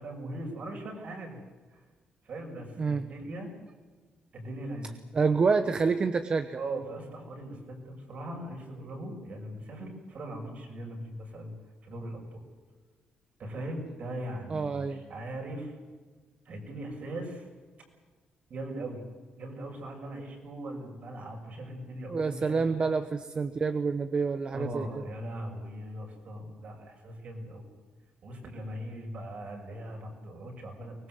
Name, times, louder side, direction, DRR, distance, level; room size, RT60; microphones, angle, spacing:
voice 1, 0.0-1.4 1.7-1.8 2.2-3.5 4.3-4.9 6.6-11.5 11.8-12.4 13.4-15.7 16.4-17.5 18.5-19.0 19.4-22.9 24.5-27.7 28.2-30.9, right 1 dB, 55° right, 2 dB, 6.6 m, -40 dB
voice 2, 5.1-6.6 14.5-15.0 22.1-25.0, right 4 dB, 35° right, 10 dB, 1.0 m, -28 dB
24.0 x 20.5 x 8.0 m, 1.4 s
cardioid pair, 135°, 3 cm